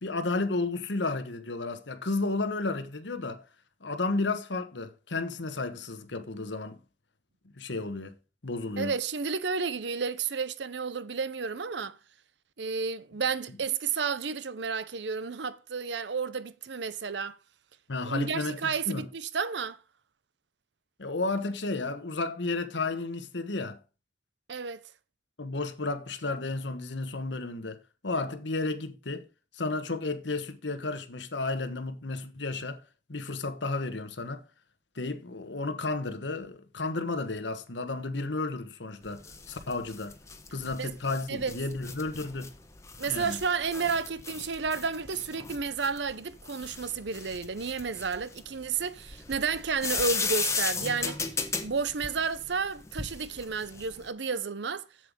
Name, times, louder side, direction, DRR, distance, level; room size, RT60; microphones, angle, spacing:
voice 1, 0.0-3.4 3.8-6.8 7.6-8.1 8.4-8.9 17.9-19.0 21.0-23.8 25.4-27.8 28.0-29.2 29.5-32.8 33.1-34.4 34.9-40.1 40.5-42.5 43.1-43.4, left 3 dB, 85° left, 1.3 m, -32 dB
voice 2, 8.8-12.0 12.6-17.4 18.0-19.8 24.5-24.8 40.8-40.9 41.3-41.5 43.0-51.3 51.6-54.9, right 5 dB, 75° right, 0.7 m, -31 dB
sound 1, 39.0-54.1, left 4 dB, 15° left, 1.2 m, -36 dB
7.8 x 7.8 x 5.1 m
head